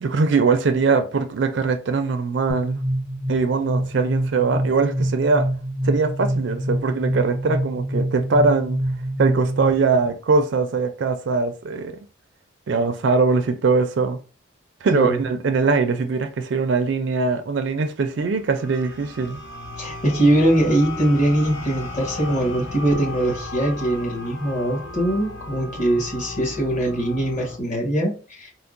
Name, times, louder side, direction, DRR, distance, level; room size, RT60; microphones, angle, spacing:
voice 1, 0.0-2.8 3.3-5.5 5.8-8.8 9.2-12.0 12.7-14.2 14.8-19.4, right 4 dB, 60° right, 0.4 m, -21 dB
sound 1, 2.5-10.1, right 1 dB, 15° left, 0.6 m, -26 dB
voice 2, 14.9-15.3 19.8-28.5, right 1 dB, 35° left, 1.2 m, -22 dB
sound 2, 18.3-27.6, left 2 dB, 60° left, 0.6 m, -35 dB
4.4 x 2.0 x 2.4 m
head